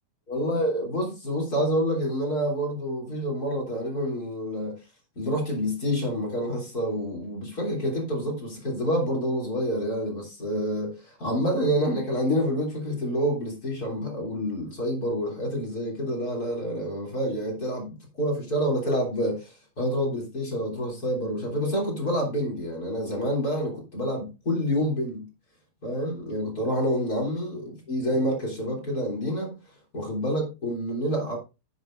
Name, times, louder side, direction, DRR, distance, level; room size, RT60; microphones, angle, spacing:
voice 1, 0.3-4.8 5.2-25.3 25.8-29.5 29.9-31.4, equal, 30° left, 3.6 m, -28 dB
9.8 x 9.3 x 2.6 m
omnidirectional pair, 3.3 m